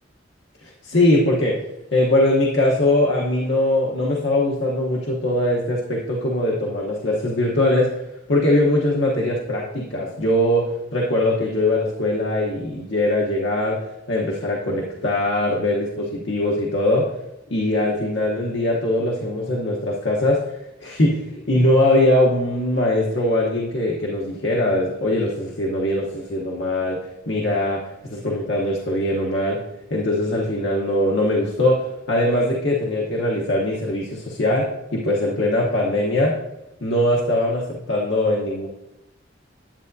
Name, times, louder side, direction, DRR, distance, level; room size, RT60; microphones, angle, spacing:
voice 1, 0.6-1.6 1.9-8.0 8.3-13.8 14.1-17.1 17.5-20.4 20.8-27.0 27.3-29.6 29.9-36.4 36.8-38.7, left 1 dB, 65° left, -3 dB, 1.0 m, -21 dB
10.0 x 8.3 x 2.7 m, 0.90 s
head